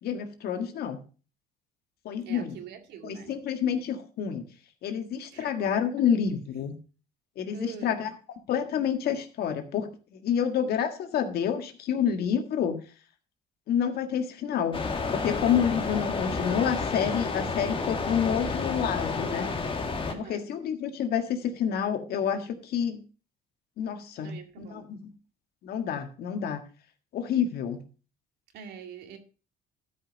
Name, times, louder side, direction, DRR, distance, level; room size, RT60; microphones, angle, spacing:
voice 1, 0.0-1.0 2.1-2.5 3.0-4.4 4.8-6.7 7.4-8.1 8.5-12.8 13.7-14.8 15.1-19.5 20.2-23.0 23.8-25.0 25.6-26.6 27.1-27.8, left 8 dB, 70° left, 1.7 m, -28 dB
voice 2, 2.2-3.4 5.3-6.1 7.5-7.9 20.1-20.5 24.2-24.9 28.5-29.2, right 7 dB, 75° right, 2.1 m, -44 dB
sound 1, 14.7-20.1, left 4 dB, 30° left, 1.8 m, -30 dB
12.5 x 5.5 x 5.3 m
cardioid pair, 110°, 17 cm